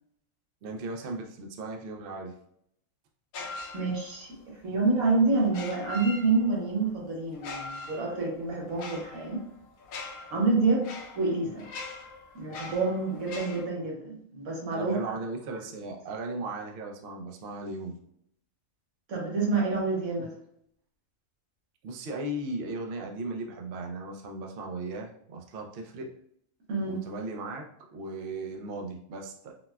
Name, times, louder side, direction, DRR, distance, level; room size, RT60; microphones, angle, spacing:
voice 1, 0.6-2.3 14.7-18.0 21.8-26.1 26.8-27.7 27.9-29.5, right 2 dB, 65° right, 1 dB, 0.6 m, -37 dB
sound 1, 3.3-4.3 5.4-6.7 7.3-13.6, left 3 dB, 85° left, 1.0 m, -42 dB
voice 2, 3.7-9.4 10.3-10.9 11.2-11.6 12.3-15.0 19.1-20.3 26.7-27.0, right 3 dB, 90° right, -2 dB, 1.4 m, -27 dB
4.0 x 2.1 x 2.2 m, 0.70 s
omnidirectional pair, 1.4 m